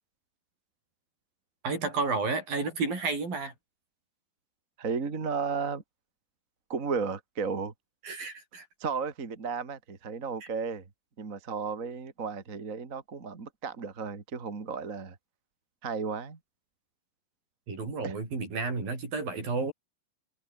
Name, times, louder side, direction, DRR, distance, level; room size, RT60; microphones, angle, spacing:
voice 1, 1.6-3.5 8.0-8.7 10.4-10.5 17.7-19.7, right 4 dB, 70° right, 9.4 m, -31 dB
voice 2, 4.8-5.8 6.7-7.7 8.8-10.8 11.2-15.2 15.8-16.4 18.0-18.1, right 5 dB, 25° right, 2.3 m, -34 dB
omnidirectional pair, 4.2 m